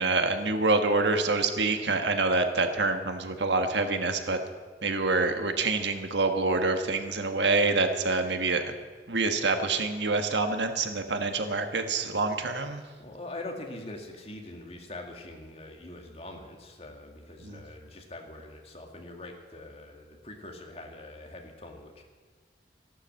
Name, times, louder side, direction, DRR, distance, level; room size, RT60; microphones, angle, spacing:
voice 1, 0.0-4.4 4.8-8.7 9.1-12.8 17.4-17.6, right 3 dB, 90° right, 6 dB, 1.4 m, -26 dB
voice 2, 12.8-22.0, left 2 dB, 35° left, 2 dB, 2.0 m, -43 dB
14.0 x 11.5 x 7.6 m, 1.5 s
head